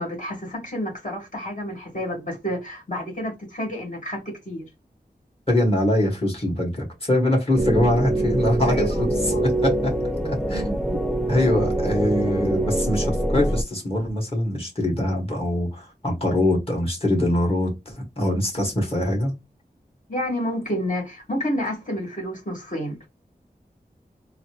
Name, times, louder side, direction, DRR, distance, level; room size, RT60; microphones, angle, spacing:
voice 1, 0.0-4.7 8.7-9.1 9.3-9.5 20.1-23.1, equal, 50° left, 1.8 m, -29 dB
voice 2, 5.5-8.9 9.4-11.0 11.3-19.3, left 1 dB, 35° left, 1.7 m, -23 dB
sound 1, 7.5-13.6, right 1 dB, ahead, 0.6 m, -24 dB
3.9 x 2.0 x 3.0 m
wide cardioid pair, 65°, 17 cm